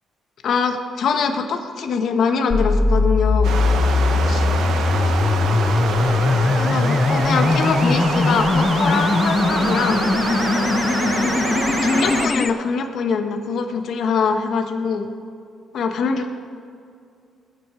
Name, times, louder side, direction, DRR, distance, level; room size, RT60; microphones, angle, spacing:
voice 1, 0.4-3.5 4.2-4.5 6.6-10.0 11.1-11.4 11.8-15.1 15.7-16.3, left 5 dB, 65° left, 5 dB, 1.3 m, -23 dB
sound 1, 2.5-12.5, left 3 dB, 30° left, 0.6 m, -20 dB
Stream, 3.4-12.3, right 5 dB, 80° right, 1.3 m, -25 dB
21.0 x 7.8 x 4.5 m, 2.4 s
cardioid pair, 90°, 0 cm